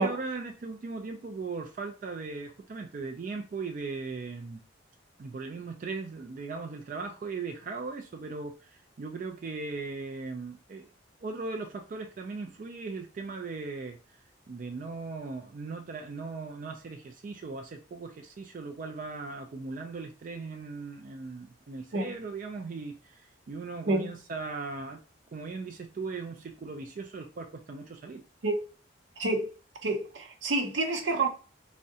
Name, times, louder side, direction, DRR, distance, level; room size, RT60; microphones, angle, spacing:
voice 1, 0.0-4.6 5.2-10.9 11.2-14.2 14.5-25.0 25.3-28.2, right 4 dB, 45° right, 0.3 m, -38 dB
voice 2, 29.2-29.5 29.8-31.3, right 2 dB, 85° right, 0.7 m, -28 dB
3.5 x 2.1 x 2.7 m
head